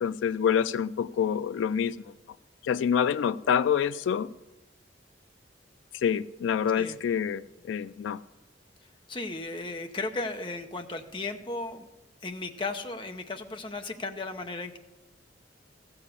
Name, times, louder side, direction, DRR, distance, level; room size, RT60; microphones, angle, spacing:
voice 1, 0.0-2.1 2.6-4.3 5.9-8.2, left 8 dB, 85° left, 16 dB, 0.3 m, -27 dB
voice 2, 9.1-11.9 12.2-14.8, left 3 dB, 25° left, 6 dB, 0.7 m, -35 dB
14.5 x 6.9 x 6.9 m, 1.0 s
head